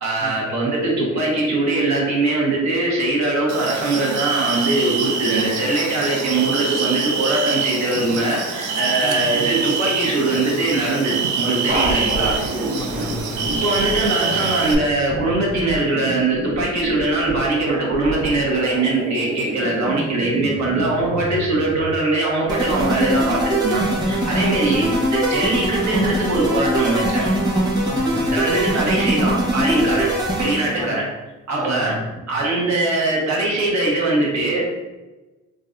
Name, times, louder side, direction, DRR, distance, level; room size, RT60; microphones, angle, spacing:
voice 1, 0.0-12.4 13.6-27.3 28.3-30.1 30.4-31.1 31.5-32.0 32.3-34.7, right 2 dB, 65° right, -3 dB, 1.3 m, -21 dB
sound 1, 3.5-14.7, right 5 dB, 80° right, 0.6 m, -25 dB
sound 2, 11.7-21.9, right 1 dB, 30° right, 1.3 m, -29 dB
voice 2, 12.6-13.5 24.6-24.9 27.8-28.4 30.8-31.0 31.5-32.2, left 1 dB, 10° left, 4 dB, 0.4 m, -33 dB
sound 3, 22.5-30.8, equal, 15° right, 1.1 m, -21 dB
3.8 x 2.6 x 2.6 m, 1.1 s
cardioid pair, 90°, 30 cm